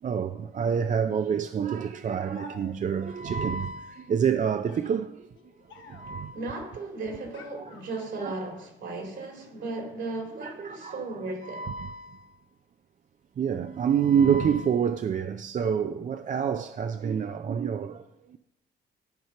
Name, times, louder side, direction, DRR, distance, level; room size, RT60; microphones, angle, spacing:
voice 1, 0.0-5.3 5.8-6.4 7.6-7.7 8.2-8.4 10.4-11.2 11.4-12.3 13.4-18.4, right 7 dB, 40° right, 0.4 m, -28 dB
sound 1, 2.3-3.1 4.3-6.3 7.3-8.4, left 6 dB, 80° left, 1.2 m, -52 dB
voice 2, 6.3-11.7, right 2 dB, 65° right, 2.6 m, -36 dB
12.0 x 4.4 x 5.8 m
cardioid pair, 90°, 20 cm